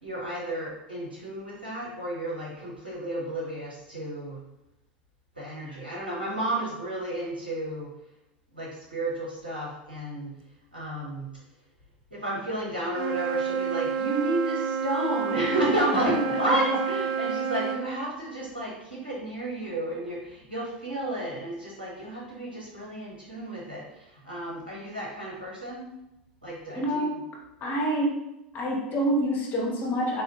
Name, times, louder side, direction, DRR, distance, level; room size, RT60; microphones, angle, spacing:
voice 1, 0.0-4.4 5.4-7.9 8.5-10.3 10.7-11.3 12.1-25.9 26.4-27.1, right 1 dB, 90° right, -6 dB, 1.0 m, -32 dB
Wind instrument woodwind instrument, 12.9-17.8, right 7 dB, 45° right, 0.5 m, -29 dB
voice 2, 15.9-16.8 26.7-27.1 27.6-28.3 28.5-30.2, equal, 40° left, -1 dB, 0.8 m, -27 dB
3.5 x 2.4 x 2.7 m, 0.87 s
figure-of-eight pair, 85°, 5 cm